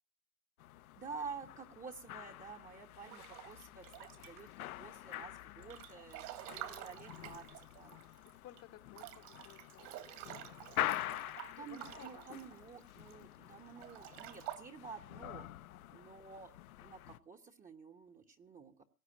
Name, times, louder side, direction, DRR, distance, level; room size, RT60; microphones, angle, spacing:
sound 1, 0.6-17.2, left 15 dB, 80° left, 1.0 m, -46 dB
voice 1, 1.0-8.0 11.6-15.5 15.9-16.5 16.8-18.8, right 5 dB, 20° right, 4 dB, 1.1 m, -50 dB
Breathing / Bathtub (filling or washing) / Splash splatter, 3.1-4.6 5.1-8.3 8.6-8.7 8.9-13.1 13.7-14.6, right 13 dB, 60° right, 2.6 m, -49 dB
voice 2, 5.5-5.9 8.2-9.9 10.7-12.3 15.7-16.1, left 12 dB, 35° left, 10 dB, 1.1 m, -58 dB
17.5 x 8.0 x 8.8 m, 0.38 s
hypercardioid pair, 120°, 42 cm